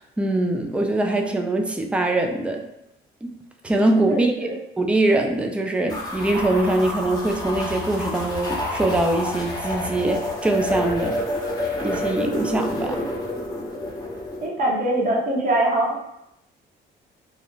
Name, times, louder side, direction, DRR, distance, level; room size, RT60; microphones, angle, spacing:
voice 1, 0.0-2.7 3.2-3.3 3.6-4.3 4.8-11.2 11.8-13.0, right 2 dB, 5° right, 3 dB, 0.3 m, -23 dB
voice 2, 4.1-4.5 12.8-13.1 14.4-16.0, right 1 dB, 45° right, -2 dB, 0.8 m, -23 dB
sound 1, 5.9-14.5, left 1 dB, 20° left, 0.8 m, -29 dB
2.4 x 2.0 x 3.0 m, 0.83 s
cardioid pair, 90°, 20 cm